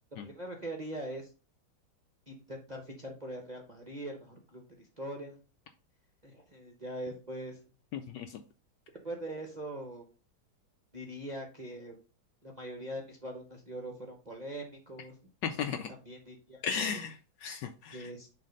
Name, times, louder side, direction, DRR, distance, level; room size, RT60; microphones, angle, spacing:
voice 1, 0.1-1.3 2.3-5.3 6.2-7.6 9.0-10.0 10.9-12.0 12.4-15.1 16.0-17.0 17.9-18.3, right 1 dB, 35° right, 1 dB, 0.7 m, -42 dB
voice 2, 7.9-8.4 15.4-15.9 16.6-18.1, left 7 dB, 75° left, 7 dB, 1.1 m, -35 dB
6.7 x 3.2 x 5.1 m, 0.34 s
omnidirectional pair, 2.3 m